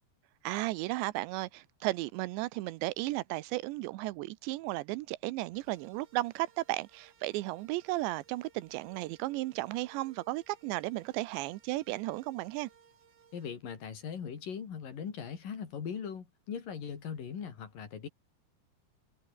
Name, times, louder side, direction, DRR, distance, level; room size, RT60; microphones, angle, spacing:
voice 1, 0.4-12.7, right 19 dB, 80° right, 2.9 m, -34 dB
sound 1, 5.5-13.5, right 7 dB, 55° right, 5.5 m, -62 dB
voice 2, 13.3-18.1, left 7 dB, 50° left, 4.4 m, -40 dB
omnidirectional pair, 5.3 m